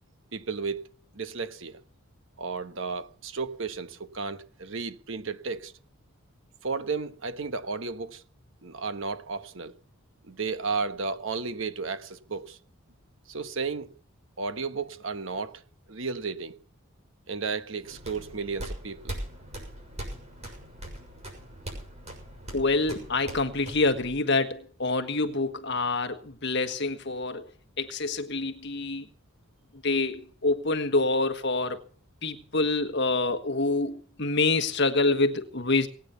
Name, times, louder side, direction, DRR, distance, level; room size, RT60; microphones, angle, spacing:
voice 1, 0.3-0.9 1.1-1.8 2.4-5.7 6.6-8.2 8.6-9.7 10.2-12.6 13.3-13.9 14.4-15.6 15.9-16.6 17.3-19.2, right 4 dB, 60° right, 1.2 m, -33 dB
sound 1, 17.8-24.1, right 1 dB, 30° right, 6.6 m, -41 dB
voice 2, 22.5-27.5 27.8-29.1 29.8-31.8 32.2-35.9, left 3 dB, 50° left, 1.5 m, -26 dB
20.5 x 9.4 x 6.9 m
head